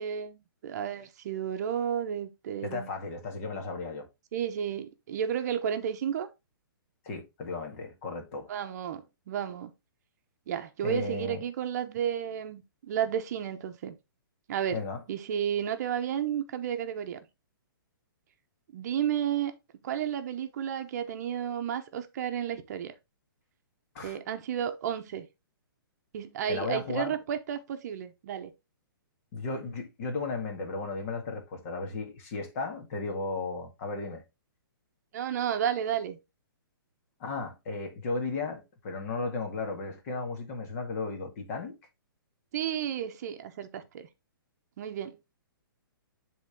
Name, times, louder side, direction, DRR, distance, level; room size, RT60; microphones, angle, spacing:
voice 1, 0.0-2.9 4.3-6.3 8.5-9.7 10.5-14.0 14.5-17.2 18.7-19.5 19.8-22.9 24.0-25.3 26.1-28.5 35.1-36.2 42.5-44.1 44.8-45.2, right 9 dB, 45° right, 0.9 m, -32 dB
voice 2, 2.6-4.1 7.0-8.5 10.8-11.4 14.7-15.0 23.9-24.2 26.5-27.2 29.3-34.2 37.2-41.8, left 3 dB, 40° left, 2.0 m, -35 dB
9.9 x 3.7 x 3.6 m
hypercardioid pair, 155°, 12 cm